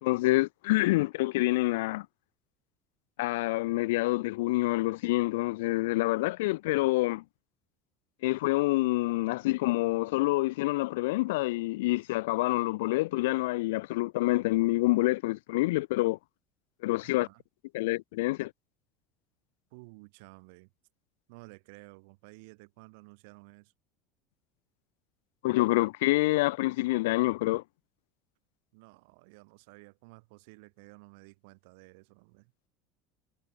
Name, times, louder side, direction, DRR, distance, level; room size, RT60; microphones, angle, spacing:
voice 1, 0.0-2.1 3.2-7.2 8.2-16.2 16.8-17.3 17.7-18.5 25.4-27.6, left 20 dB, 90° left, 0.4 m, -27 dB
voice 2, 17.0-17.4 19.7-20.7 21.3-23.7 28.7-32.5, right 29 dB, 70° right, 6.1 m, -53 dB
cardioid pair, 160°, 0 cm